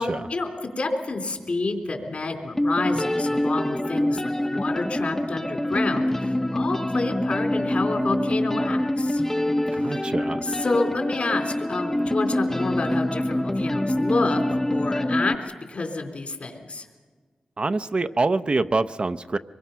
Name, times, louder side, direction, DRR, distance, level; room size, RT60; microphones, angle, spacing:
voice 1, 0.0-9.2 9.7-10.1 10.4-16.9, left 3 dB, 60° left, 3 dB, 3.4 m, -29 dB
sound 1, 2.0-2.1 2.6-15.4, left 1 dB, 15° left, 0.7 m, -25 dB
voice 2, 9.7-10.4 17.6-19.4, right 3 dB, 45° right, 10 dB, 0.6 m, -25 dB
25.0 x 22.0 x 5.7 m, 1.5 s
cardioid pair, 65°, 2 cm